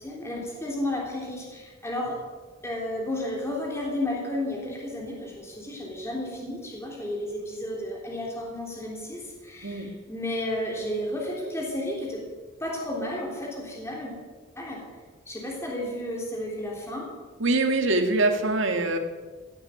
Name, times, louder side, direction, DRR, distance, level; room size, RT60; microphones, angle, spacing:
voice 1, 0.0-2.2 2.6-12.2 12.6-14.1 14.6-14.8 15.3-17.1, left 1 dB, 15° left, -2 dB, 3.3 m, -32 dB
voice 2, 17.4-19.0, right 2 dB, 70° right, 5 dB, 1.9 m, -23 dB
16.5 x 8.8 x 9.3 m, 1.4 s
head